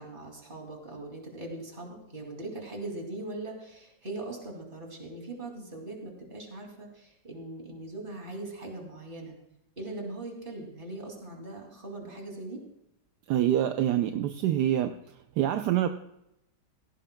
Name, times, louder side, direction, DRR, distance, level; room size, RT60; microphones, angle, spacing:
voice 1, 0.0-9.4 9.8-12.6, right 2 dB, 30° right, 0 dB, 2.8 m, -40 dB
voice 2, 13.3-14.9 15.4-15.9, right 11 dB, 75° right, 7 dB, 1.2 m, -25 dB
17.0 x 15.5 x 2.2 m, 0.83 s
omnidirectional pair, 1.8 m